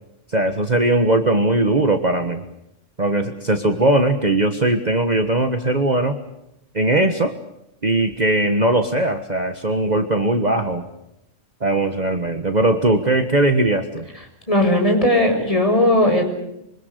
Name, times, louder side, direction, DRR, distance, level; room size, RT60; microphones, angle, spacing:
voice 1, 0.3-2.4 3.0-6.2 6.7-7.4 7.8-10.9 11.6-14.1, right 2 dB, 35° right, 7 dB, 1.5 m, -19 dB
voice 2, 14.5-16.2, left 1 dB, 25° left, 3 dB, 6.6 m, -17 dB
26.0 x 25.0 x 6.6 m, 0.84 s
omnidirectional pair, 1.3 m